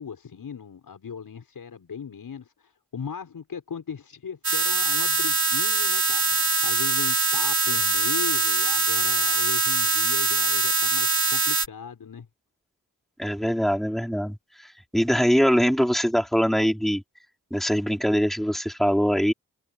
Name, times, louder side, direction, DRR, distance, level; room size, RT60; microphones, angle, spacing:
voice 1, 0.0-12.3, left 6 dB, 80° left, 6.5 m, -38 dB
sound 1, 4.4-11.7, right 3 dB, 40° right, 6.3 m, -23 dB
voice 2, 13.2-14.4 14.6-17.0 17.5-19.3, equal, ahead, 4.1 m, -23 dB
cardioid pair, 40°, 34 cm